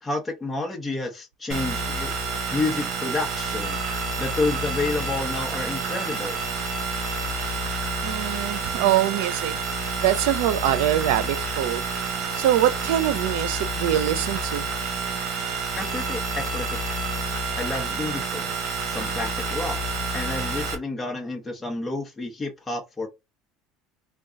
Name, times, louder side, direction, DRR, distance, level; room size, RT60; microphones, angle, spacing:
voice 1, 0.0-3.8 4.2-6.4 15.8-17.0 17.6-19.8 20.1-23.1, left 2 dB, 15° left, 0.9 m, -30 dB
sound 1, 1.5-20.8, right 3 dB, 50° right, 1.4 m, -29 dB
voice 2, 8.0-9.6 10.0-11.8 12.3-14.7, right 12 dB, 80° right, 0.5 m, -23 dB
3.7 x 2.3 x 3.7 m
supercardioid pair, 110°, 0 cm